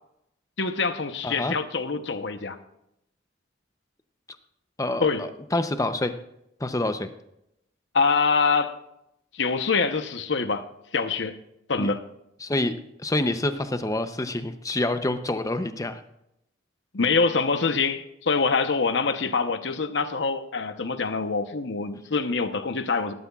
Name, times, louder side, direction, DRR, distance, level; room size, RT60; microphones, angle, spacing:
voice 1, 0.6-2.6 5.0-5.3 7.9-8.8 9.3-11.4 11.7-12.0 16.9-23.1, left 4 dB, 65° left, 0.9 m, -25 dB
voice 2, 1.2-1.5 4.8-6.1 6.6-7.1 11.8-11.9 12.4-12.7 13.0-16.0, left 2 dB, 20° left, 0.7 m, -27 dB
18.0 x 12.0 x 2.4 m
head